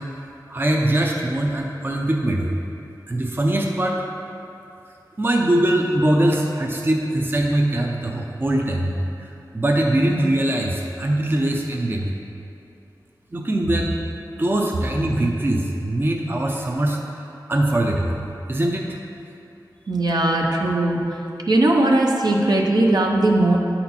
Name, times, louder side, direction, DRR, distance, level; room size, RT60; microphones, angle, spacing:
voice 1, 0.0-2.6 3.1-4.0 5.2-12.1 13.3-13.9 14.4-17.0 17.5-18.2 18.5-19.0, right 1 dB, 30° right, 0 dB, 0.6 m, -22 dB
voice 2, 19.9-21.0 21.5-23.6, right 2 dB, 65° right, -1 dB, 0.8 m, -18 dB
9.2 x 4.3 x 4.3 m, 2.7 s
wide cardioid pair, 65°, 8 cm